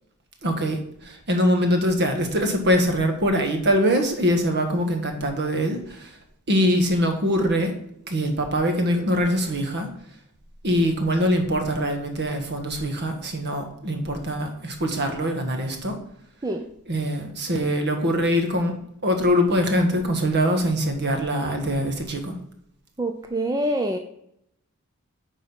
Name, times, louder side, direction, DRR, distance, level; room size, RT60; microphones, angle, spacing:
voice 1, 0.4-6.2 6.5-7.7 8.1-9.9 10.6-16.0 16.9-18.7 19.0-22.3, equal, 50° right, 5 dB, 1.4 m, -23 dB
voice 2, 23.0-24.0, right 1 dB, 15° right, 4 dB, 0.5 m, -25 dB
9.1 x 3.8 x 6.1 m, 0.73 s
head